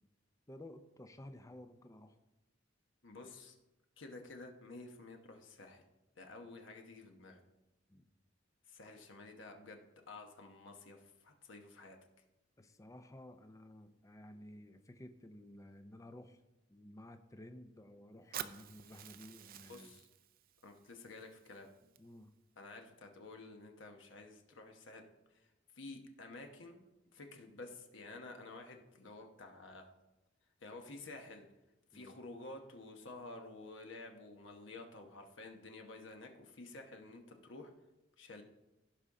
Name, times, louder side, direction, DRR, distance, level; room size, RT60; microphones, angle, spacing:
voice 1, 0.5-2.2 7.9-8.1 12.6-16.4 16.7-19.9 22.0-22.3 31.9-32.1, left 1 dB, 15° left, 8 dB, 0.5 m, -54 dB
voice 2, 3.0-3.6 4.0-5.8 6.2-7.4 8.7-12.0 19.7-20.1 20.6-21.7 22.6-25.0 25.3-25.5 25.7-26.8 27.1-29.9 30.6-31.5 31.9-37.7 38.2-38.4, left 2 dB, 70° left, 4 dB, 1.1 m, -51 dB
Fire, 18.3-22.3, right 10 dB, 50° right, 0.5 m, -50 dB
16.5 x 5.5 x 3.7 m, 0.96 s
head